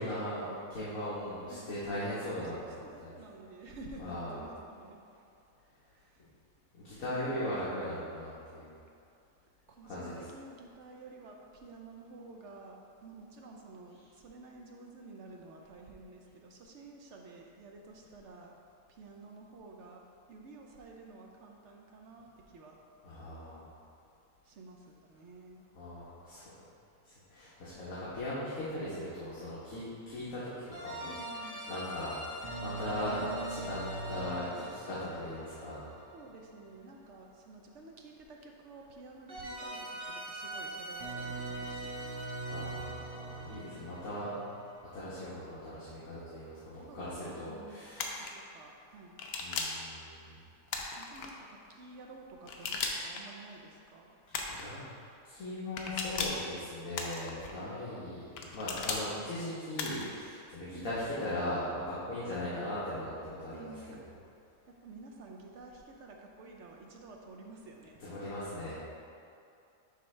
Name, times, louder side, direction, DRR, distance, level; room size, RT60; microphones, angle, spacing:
voice 1, 0.0-3.1 4.0-4.4 6.7-8.7 9.8-10.1 23.0-23.7 25.8-26.5 27.0-30.5 30.8-32.1 32.6-33.8 34.1-35.8 42.5-44.3 44.9-48.3 49.4-50.4 54.5-54.8 55.2-63.1 63.4-63.7 68.0-68.8, left 1 dB, 60° left, -10 dB, 1.6 m, -39 dB
voice 2, 2.1-5.0 5.9-6.2 7.0-7.5 9.7-18.6 18.9-22.8 24.4-25.6 31.0-31.7 36.1-42.2 46.9-49.2 51.0-54.1 60.7-61.3 63.5-64.0 64.7-68.0, right 3 dB, 60° right, 1 dB, 0.8 m, -51 dB
sound 1, 30.7-36.7 39.3-45.1, right 2 dB, 25° right, 0.9 m, -41 dB
sound 2, 48.0-48.3 49.2-49.8 50.7-51.3 52.5-53.2 54.3-54.7 55.8-56.5 56.9-57.5 58.4-59.0 59.8-60.2, left 4 dB, 75° left, 1.2 m, -36 dB
10.5 x 3.8 x 3.2 m, 2.6 s
omnidirectional pair, 1.6 m